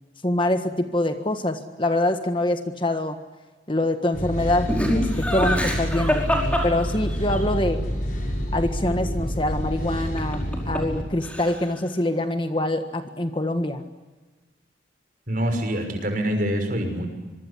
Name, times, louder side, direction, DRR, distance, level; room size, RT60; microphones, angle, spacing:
voice 1, 0.2-3.2 3.7-7.8 8.5-13.8, left 1 dB, 25° left, 7 dB, 1.5 m, -25 dB
sound 1, 4.1-11.0, equal, 45° left, 6.2 m, -28 dB
Laughter, 4.7-7.4 10.2-11.0 11.2-11.8, equal, 5° left, 5.1 m, -25 dB
voice 2, 15.3-17.1, equal, 45° right, 5 dB, 6.0 m, -25 dB
25.5 x 24.0 x 8.4 m, 1.2 s
head